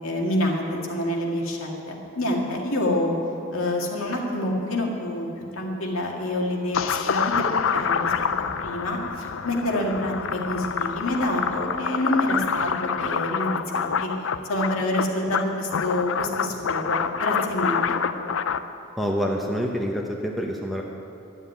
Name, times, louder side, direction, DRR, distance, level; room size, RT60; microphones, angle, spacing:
voice 1, 0.0-3.2 3.5-5.3 5.5-7.5 7.7-8.1 8.6-14.1 14.5-18.0, left 1 dB, 90° left, 0 dB, 2.1 m, -27 dB
sound 1, 6.7-18.6, left 6 dB, 70° left, 0.5 m, -27 dB
voice 2, 19.0-20.8, equal, ahead, -1 dB, 0.8 m, -27 dB
12.0 x 7.3 x 9.8 m, 2.7 s
head